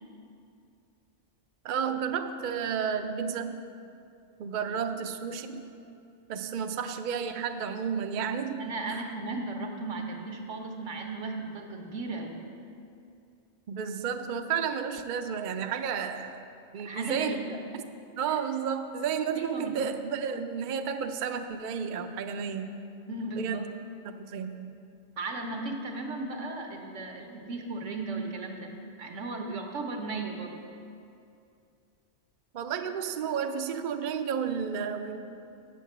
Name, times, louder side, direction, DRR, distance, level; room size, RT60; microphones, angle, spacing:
voice 1, 1.6-3.6 4.4-5.7 6.3-9.0 13.7-16.4 16.7-17.4 18.1-22.8 23.4-23.7 24.2-24.7 32.5-35.2, right 7 dB, 55° right, 7 dB, 0.5 m, -32 dB
voice 2, 8.6-12.4 16.8-17.6 18.3-18.4 19.3-19.8 23.1-23.7 25.2-28.7 29.0-30.6, right 3 dB, 85° right, 2 dB, 1.5 m, -36 dB
8.3 x 7.0 x 7.3 m, 2.5 s
omnidirectional pair, 1.2 m